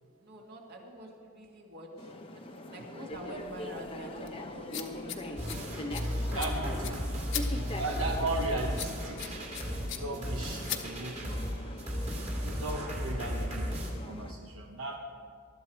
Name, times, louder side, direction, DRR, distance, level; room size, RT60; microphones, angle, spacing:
voice 1, 0.2-5.7 6.1-6.6 6.9-7.4 12.6-13.4, equal, 45° right, 0 dB, 2.1 m, -47 dB
sound 1, 2.0-14.3, left 1 dB, 25° left, 0.9 m, -43 dB
sound 2, 3.1-11.5, left 10 dB, 60° left, 1.1 m, -42 dB
sound 3, 5.4-13.9, equal, 30° right, 2.5 m, -35 dB
voice 2, 6.3-7.0 7.8-9.4 9.9-11.4 12.4-13.7 14.0-15.0, right 2 dB, 70° right, 1 dB, 1.0 m, -36 dB
19.5 x 12.5 x 4.6 m, 2.3 s
head